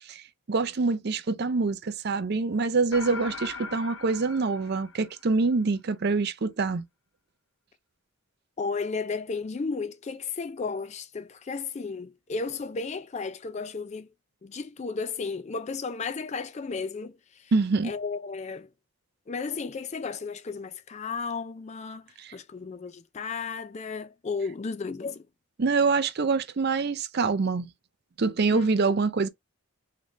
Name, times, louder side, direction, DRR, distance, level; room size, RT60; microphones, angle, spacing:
voice 1, 0.1-6.8 17.5-17.9 22.2-22.3 25.6-27.7 28.2-29.3, right 4 dB, 45° right, 0.5 m, -25 dB
sound 1, 2.9-5.5, left 4 dB, 55° left, 0.7 m, -40 dB
voice 2, 8.6-14.1 14.4-17.5 17.8-18.7 19.3-25.3 28.5-28.7, left 4 dB, 30° left, 0.3 m, -34 dB
3.8 x 3.5 x 3.1 m
head